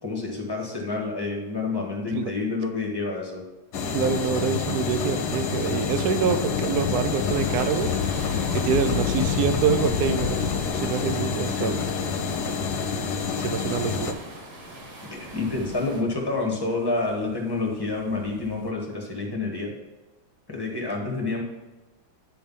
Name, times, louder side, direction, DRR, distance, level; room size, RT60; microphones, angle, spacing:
voice 1, 0.0-3.4 11.5-11.8 15.0-19.7 20.5-21.4, left 3 dB, 15° left, -1 dB, 1.3 m, -28 dB
sound 1, 3.7-14.1, left 5 dB, 65° left, 1.2 m, -28 dB
voice 2, 3.9-8.3 8.5-11.7 13.4-14.2, right 6 dB, 70° right, 10 dB, 1.0 m, -26 dB
Thunder / Rain, 4.4-13.4 14.1-14.2 15.1-16.4 17.9-18.7, left 8 dB, 90° left, 1.4 m, -32 dB
sound 2, 7.2-16.0, right 1 dB, 40° right, 1.7 m, -43 dB
10.0 x 3.4 x 5.4 m, 1.1 s
omnidirectional pair, 2.1 m